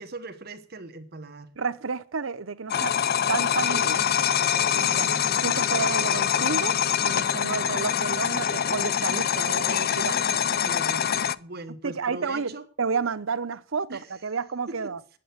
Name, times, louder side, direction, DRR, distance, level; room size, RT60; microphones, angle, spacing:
voice 1, 0.0-1.5 4.7-5.3 10.1-12.6 13.9-14.2 14.7-15.2, right 2 dB, 50° right, 1.3 m, -41 dB
voice 2, 1.6-3.0 3.3-4.3 4.7-5.1 5.4-6.8 7.0-10.1 11.8-15.0, right 5 dB, 85° right, 0.8 m, -31 dB
sound 1, 2.7-11.3, left 8 dB, 50° left, 0.5 m, -24 dB
9.5 x 8.6 x 9.4 m
head